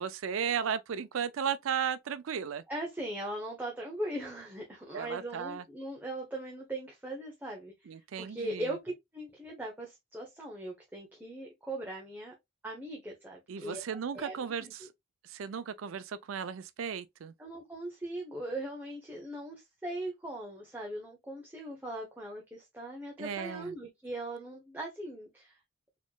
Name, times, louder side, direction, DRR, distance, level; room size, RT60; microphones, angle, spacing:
voice 1, 0.0-2.6 4.9-5.6 7.9-8.7 13.5-14.9 15.2-17.3 23.2-23.7, right 7 dB, 90° right, 0.4 m, -35 dB
voice 2, 2.7-7.9 8.2-12.3 12.6-13.8 14.1-14.7 17.4-25.6, right 1 dB, 10° right, 0.8 m, -40 dB
4.2 x 3.0 x 2.2 m
head